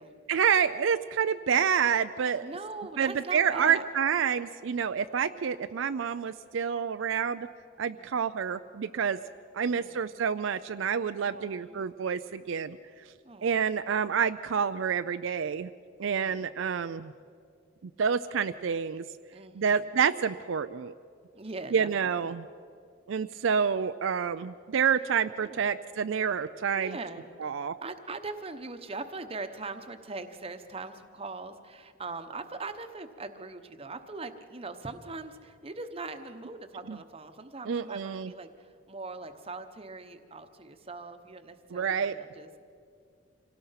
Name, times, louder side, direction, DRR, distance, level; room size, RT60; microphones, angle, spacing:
voice 1, 0.3-2.4 3.0-7.5 7.8-9.2 9.5-12.8 13.4-15.7 16.0-17.1 18.0-19.0 19.6-20.9 21.7-22.4 23.1-27.0 27.4-27.8 36.9-37.0 37.7-38.3 41.7-42.2, right 7 dB, 65° right, 10 dB, 0.4 m, -28 dB
voice 2, 2.4-3.9 8.0-8.4 9.6-10.2 11.3-11.8 13.2-13.7 16.0-16.6 19.3-20.0 21.3-22.4 25.4-25.8 26.7-42.5, right 3 dB, 30° right, 8 dB, 1.0 m, -41 dB
26.0 x 17.5 x 5.8 m, 2.3 s
head